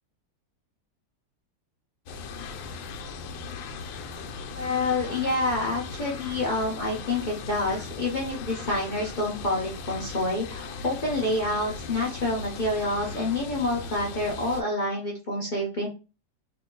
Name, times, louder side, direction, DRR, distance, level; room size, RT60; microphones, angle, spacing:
sound 1, 2.1-14.6, left 4 dB, 85° left, 1.3 m, -38 dB
voice 1, 4.5-15.9, left 2 dB, 50° left, -3 dB, 0.5 m, -28 dB
2.9 x 2.7 x 3.8 m, 0.32 s
omnidirectional pair, 2.0 m